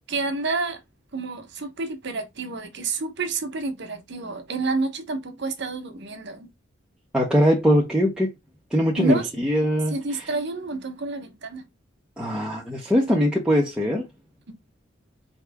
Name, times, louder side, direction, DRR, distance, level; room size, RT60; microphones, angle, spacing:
voice 1, 0.1-0.8 1.1-6.5 9.0-9.3 9.9-11.7, right 3 dB, 60° right, 1.0 m, -29 dB
voice 2, 7.1-8.3 8.7-9.9 12.2-14.0, equal, 5° right, 0.8 m, -21 dB
4.7 x 2.8 x 3.5 m
head